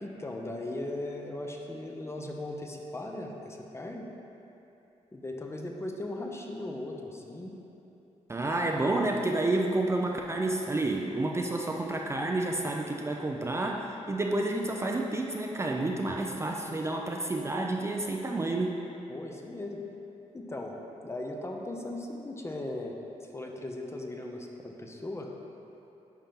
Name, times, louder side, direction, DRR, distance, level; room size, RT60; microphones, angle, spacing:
voice 1, 0.0-4.1 5.1-7.6 16.1-16.8 19.1-19.8 20.3-20.8 21.0-23.0 23.3-25.3, left 1 dB, 20° left, 1 dB, 0.8 m, -38 dB
voice 2, 8.3-18.8, right 2 dB, 20° right, 0 dB, 0.5 m, -30 dB
10.5 x 4.3 x 3.7 m, 3.0 s
cardioid pair, 90°, 13 cm